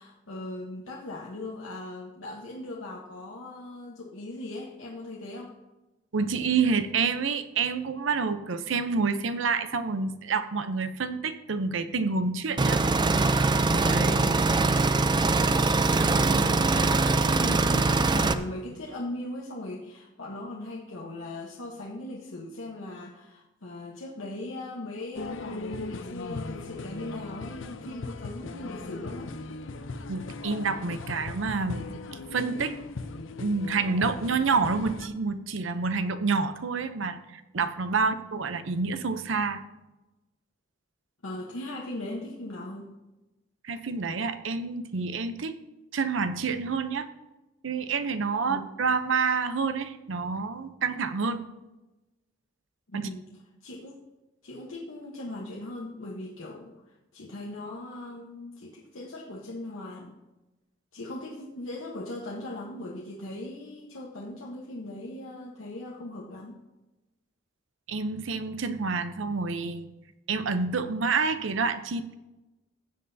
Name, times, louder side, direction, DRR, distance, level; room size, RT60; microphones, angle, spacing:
voice 1, 0.0-5.5 14.0-14.4 15.9-29.3 38.0-38.1 41.2-42.9 48.4-48.7 52.9-53.2 53.6-54.0 54.4-56.7 57.1-60.1 60.9-66.6, left 1 dB, 90° left, -2 dB, 1.1 m, -39 dB
voice 2, 6.1-12.8 13.7-14.2 30.1-31.8 32.3-32.7 33.4-39.6 43.6-45.5 45.9-47.1 47.6-51.4 52.9-53.1 67.9-69.9 70.3-72.1, right 4 dB, 70° right, 11 dB, 0.6 m, -28 dB
sound 1, 12.6-18.3, right 3 dB, 25° right, 0.4 m, -23 dB
sound 2, 25.1-35.1, left 3 dB, 75° left, 0.6 m, -38 dB
16.0 x 7.8 x 2.7 m, 1.1 s
head